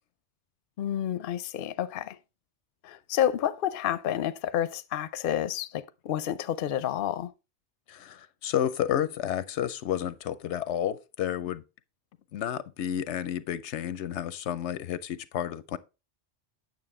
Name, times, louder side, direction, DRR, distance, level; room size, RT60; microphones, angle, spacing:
voice 1, 0.8-2.2 2.8-7.3, left 11 dB, 60° left, 0.7 m, -29 dB
voice 2, 7.9-11.6 12.3-15.8, left 10 dB, 85° left, 0.9 m, -31 dB
8.9 x 6.5 x 3.7 m
omnidirectional pair, 1.2 m